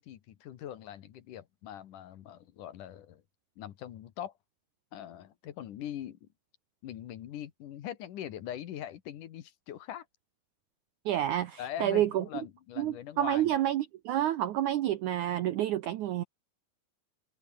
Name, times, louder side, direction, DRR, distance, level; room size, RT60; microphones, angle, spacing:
voice 1, 0.0-3.2 3.6-4.3 4.9-6.3 6.8-10.1 11.6-13.5, left 11 dB, 60° left, 2.5 m, -42 dB
voice 2, 11.0-12.2 12.8-16.2, right 12 dB, 85° right, 1.7 m, -29 dB
omnidirectional pair, 4.8 m